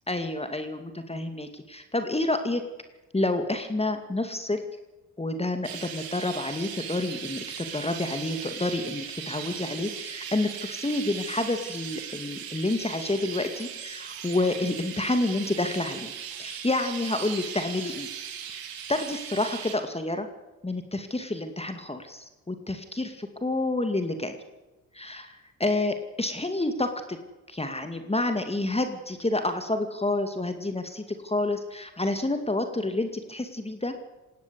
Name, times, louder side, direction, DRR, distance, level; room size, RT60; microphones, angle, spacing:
voice 1, 0.1-2.6 3.1-4.6 5.2-16.1 16.4-18.1 18.5-18.6 18.9-20.3 20.6-24.4 24.9-27.2 27.5-33.9, left 2 dB, 15° left, 8 dB, 2.4 m, -29 dB
Chirp tweet, 5.6-19.7, right 8 dB, 75° right, 3.6 m, -38 dB
19.5 x 17.0 x 8.2 m, 1.1 s
supercardioid pair, 55°, 36 cm